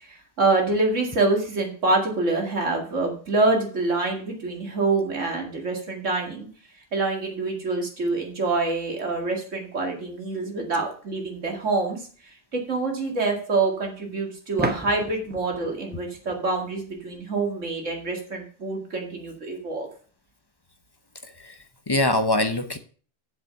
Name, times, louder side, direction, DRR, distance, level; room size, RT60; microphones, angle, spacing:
voice 1, 0.0-6.5 6.9-19.9, right 3 dB, 80° right, 1 dB, 2.6 m, -26 dB
sound 1, 11.6-11.7 14.6-17.2, right 2 dB, 10° right, 0.8 m, -34 dB
voice 2, 21.2-22.8, left 1 dB, 25° left, 8 dB, 0.7 m, -24 dB
7.7 x 7.5 x 5.6 m, 0.43 s
omnidirectional pair, 1.3 m